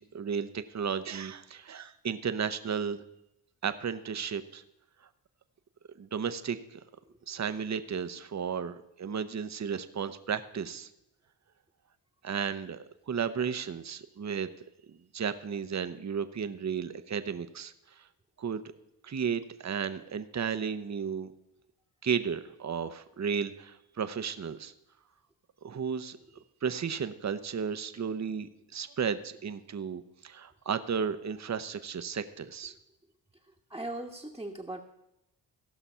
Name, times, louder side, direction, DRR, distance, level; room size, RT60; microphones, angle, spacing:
voice 1, 0.0-3.0 3.6-4.6 6.0-6.8 7.3-10.9 12.2-14.5 14.9-18.1 18.4-18.6 19.0-21.3 22.0-24.7 25.6-26.2 26.6-32.7, right 7 dB, 35° right, 11 dB, 0.8 m, -34 dB
voice 2, 33.4-34.8, right 1 dB, 5° right, -2 dB, 1.3 m, -40 dB
15.5 x 5.9 x 5.6 m, 0.86 s
cardioid pair, 55°, 46 cm